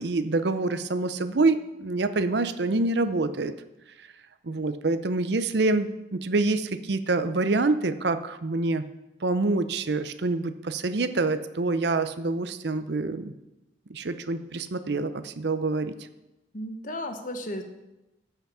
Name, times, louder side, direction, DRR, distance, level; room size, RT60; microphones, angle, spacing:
voice 1, 0.0-3.5 4.4-8.9 9.2-13.3 13.9-15.9, right 3 dB, 60° right, 11 dB, 0.6 m, -26 dB
voice 2, 16.5-17.6, left 1 dB, 45° left, 6 dB, 1.1 m, -34 dB
14.0 x 6.0 x 5.6 m, 0.97 s
head